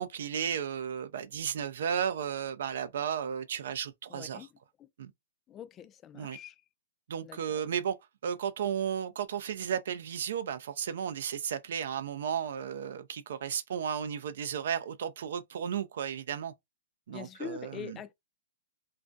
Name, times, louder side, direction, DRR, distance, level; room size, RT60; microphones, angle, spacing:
voice 1, 0.0-4.5 5.0-5.1 6.1-6.4 7.1-7.9 8.2-16.5 17.1-18.0, right 8 dB, 70° right, 0.4 m, -34 dB
voice 2, 4.1-4.5 4.8-4.9 5.5-6.6 7.2-7.6 17.1-18.1, left 8 dB, 25° left, 0.3 m, -44 dB
2.3 x 2.1 x 2.5 m
hypercardioid pair, 140°, 0 cm